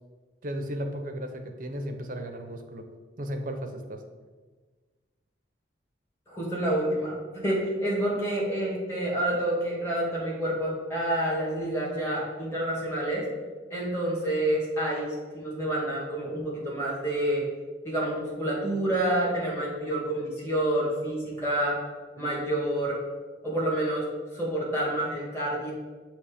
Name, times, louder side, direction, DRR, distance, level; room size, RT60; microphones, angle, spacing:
voice 1, 0.4-2.9 3.2-4.0, equal, 45° right, 5 dB, 0.6 m, -35 dB
voice 2, 6.3-13.3 13.7-15.1 15.3-17.4 17.8-21.8 22.2-23.0 23.4-24.0 24.3-25.7, right 1 dB, 15° left, -5 dB, 1.7 m, -28 dB
7.0 x 3.1 x 4.9 m, 1.4 s
head